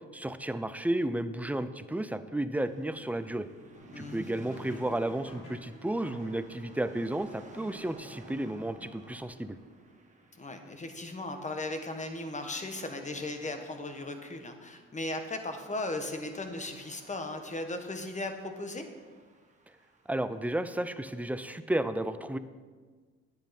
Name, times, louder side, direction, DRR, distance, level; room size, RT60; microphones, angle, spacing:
voice 1, 0.1-3.5 4.0-9.6 20.1-22.4, right 1 dB, 5° right, 11 dB, 0.5 m, -32 dB
sound 1, 2.6-21.1, right 2 dB, 25° right, 1.3 m, -55 dB
sound 2, 3.7-9.6, left 1 dB, 80° left, 3.2 m, -53 dB
voice 2, 3.9-4.3 10.4-18.8, left 2 dB, 25° left, 6 dB, 1.2 m, -37 dB
10.0 x 8.3 x 4.3 m, 1.5 s
cardioid pair, 90°, 30 cm